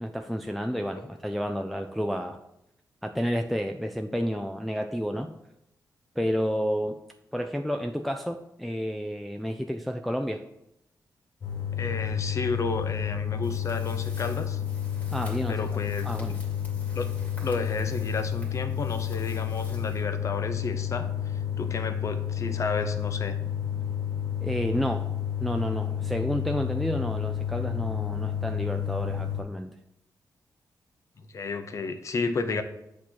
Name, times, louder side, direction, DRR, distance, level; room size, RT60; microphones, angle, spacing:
voice 1, 0.0-2.4 3.0-5.3 6.2-7.0 7.3-10.4 15.1-16.4 24.4-25.1 25.4-29.7, equal, ahead, 4 dB, 0.3 m, -30 dB
sound 1, 11.4-29.4, left 9 dB, 65° left, 1.3 m, -31 dB
voice 2, 11.7-14.6 15.5-16.1 16.9-17.1 17.4-21.1 21.6-23.3 31.2-32.6, left 3 dB, 45° left, 8 dB, 0.7 m, -32 dB
sound 2, 13.4-20.6, left 1 dB, 20° left, 2.1 m, -51 dB
8.3 x 2.9 x 6.2 m, 0.81 s
wide cardioid pair, 140°, 7 cm